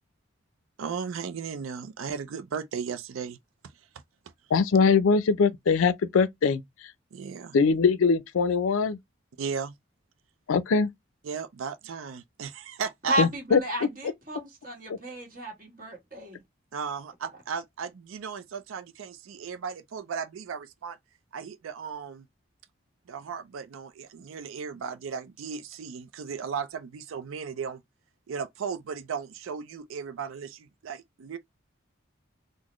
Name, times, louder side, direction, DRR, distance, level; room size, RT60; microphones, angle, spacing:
voice 1, 0.8-3.4 7.1-7.6 9.4-9.7 11.2-13.3 16.7-21.0 21.3-22.3 23.1-27.8 28.3-31.4, right 6 dB, 85° right, 0.4 m, -36 dB
voice 2, 4.5-6.6 7.5-9.0 10.5-10.9 13.2-13.6, left 5 dB, 85° left, 0.4 m, -22 dB
voice 3, 13.1-16.4, right 1 dB, 45° right, 1.4 m, -33 dB
3.9 x 2.1 x 3.0 m
head